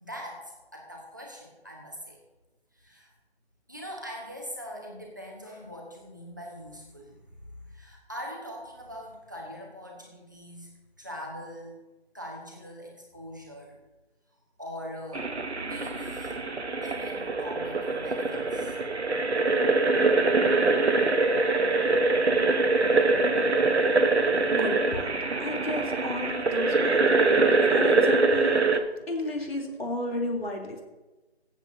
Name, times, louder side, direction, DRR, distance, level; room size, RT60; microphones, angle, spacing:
voice 1, 0.0-2.2 2.7-3.1 3.7-7.2 7.6-10.7 11.0-11.8 12.1-13.7 14.6-15.3 15.6-16.4 16.8-18.8 23.4-23.5, equal, 20° right, -2 dB, 1.4 m, -42 dB
sound 1, 15.1-28.8, right 3 dB, 80° right, 1.2 m, -24 dB
voice 2, 24.5-25.1 25.4-28.6 29.1-30.8, left 1 dB, 65° left, 0 dB, 3.6 m, -33 dB
24.0 x 8.1 x 2.8 m, 1.1 s
figure-of-eight pair, 175°, 32 cm